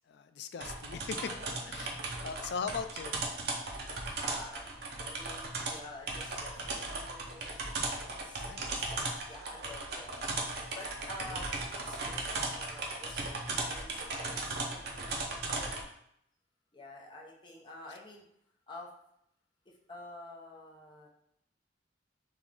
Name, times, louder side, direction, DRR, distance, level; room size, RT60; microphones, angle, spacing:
voice 1, 0.1-1.3 1.6-3.2 4.1-4.2 5.7-5.8 8.5-8.8 11.3-11.5, left 6 dB, 60° left, 10 dB, 0.3 m, -40 dB
sound 1, 0.6-15.8, right 3 dB, 60° right, 0.7 m, -37 dB
voice 2, 1.2-1.9 4.2-4.7 5.0-8.5 8.8-10.1 10.7-13.4 13.6-15.7 16.7-18.2 18.7-18.9 19.7-21.1, left 1 dB, 25° left, -3 dB, 0.8 m, -49 dB
3.6 x 3.0 x 3.6 m, 0.74 s
head